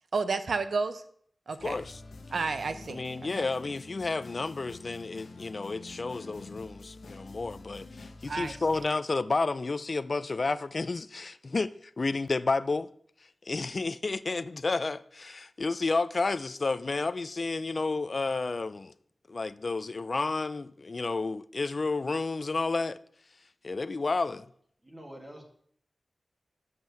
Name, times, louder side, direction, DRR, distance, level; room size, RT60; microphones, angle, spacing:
voice 1, 0.1-1.0 1.5-1.8 2.3-3.0 8.3-8.5, right 4 dB, 80° right, 0.8 m, -30 dB
sound 1, 1.6-8.9, left 3 dB, 90° left, 1.0 m, -47 dB
voice 2, 1.6-2.0 2.9-12.9 13.5-18.9 19.3-23.0 23.6-24.5, left 3 dB, 50° left, 0.4 m, -31 dB
voice 3, 24.8-25.4, equal, 25° right, 2.1 m, -46 dB
7.4 x 6.1 x 7.0 m
wide cardioid pair, 75°, 0 cm